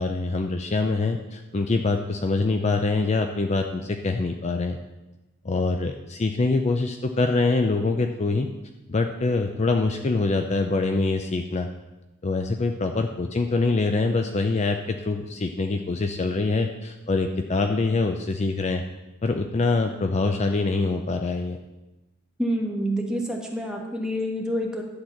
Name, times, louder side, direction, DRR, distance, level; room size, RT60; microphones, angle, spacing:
voice 1, 0.0-4.8 5.4-8.5 8.9-11.7 12.2-18.8 19.2-21.6, left 3 dB, 35° left, 5 dB, 0.5 m, -24 dB
voice 2, 22.4-24.8, equal, 5° right, 0 dB, 1.3 m, -27 dB
11.5 x 4.1 x 7.2 m, 1.0 s
head